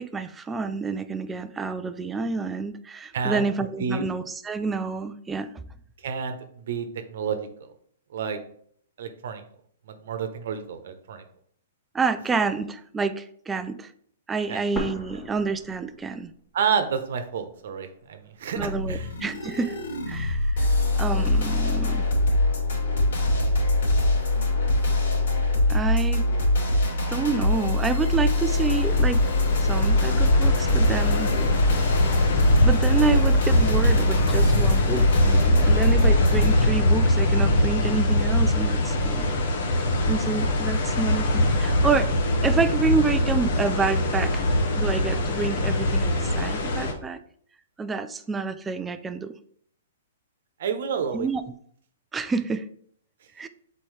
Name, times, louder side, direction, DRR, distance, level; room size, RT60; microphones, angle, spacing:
voice 1, 0.0-5.5 11.9-13.9 14.3-16.3 18.6-19.8 20.1-20.7 21.0-22.1 25.7-26.3 27.1-29.3 29.6-31.3 32.6-39.4 40.1-42.1 42.4-44.4 44.8-47.2 47.8-49.3 51.1-51.5 52.1-52.7 53.4-53.5, right 4 dB, 10° right, 11 dB, 0.3 m, -28 dB
voice 2, 3.1-3.5 3.8-4.1 6.0-7.7 8.1-8.4 9.0-9.4 9.9-11.2 14.5-14.6 16.5-19.1 50.6-51.3, right 6 dB, 60° right, 7 dB, 1.0 m, -29 dB
sound 1, 14.8-16.7 17.0-17.1 17.8-18.8, equal, 10° left, 1.1 m, -37 dB
sound 2, 18.6-36.7, left 2 dB, 70° left, 2.6 m, -23 dB
sound 3, 28.5-46.9, left 1 dB, 50° left, 1.1 m, -23 dB
7.4 x 4.2 x 3.3 m, 0.62 s
hypercardioid pair, 165°, 0 cm